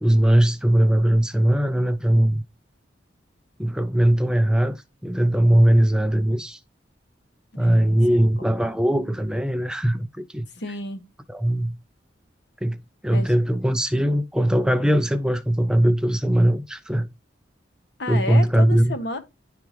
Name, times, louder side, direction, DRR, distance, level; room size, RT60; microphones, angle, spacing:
voice 1, 0.0-2.4 3.6-6.6 7.6-10.5 11.3-11.8 12.6-12.8 13.0-17.1 18.1-19.0, right 1 dB, 5° right, 0.3 m, -20 dB
voice 2, 7.6-8.0 8.4-8.5 10.6-11.0 13.1-13.3 18.0-19.2, left 2 dB, 65° left, 1.0 m, -31 dB
10.0 x 3.5 x 3.1 m
head